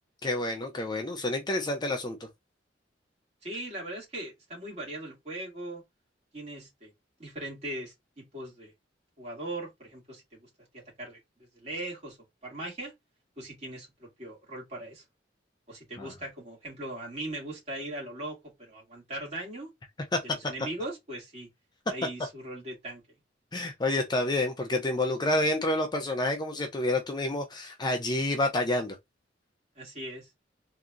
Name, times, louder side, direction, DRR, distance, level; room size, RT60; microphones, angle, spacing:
voice 1, 0.2-2.3 16.0-16.1 20.1-20.2 23.5-29.0, left 1 dB, 25° left, 0.5 m, -28 dB
voice 2, 3.4-5.8 6.3-6.9 7.2-8.7 9.2-10.5 11.0-11.2 11.5-12.2 12.4-12.9 13.4-15.0 15.7-19.7 20.2-21.5 21.9-23.0 29.8-30.3, right 1 dB, 35° right, 2.1 m, -39 dB
3.7 x 2.8 x 2.4 m
head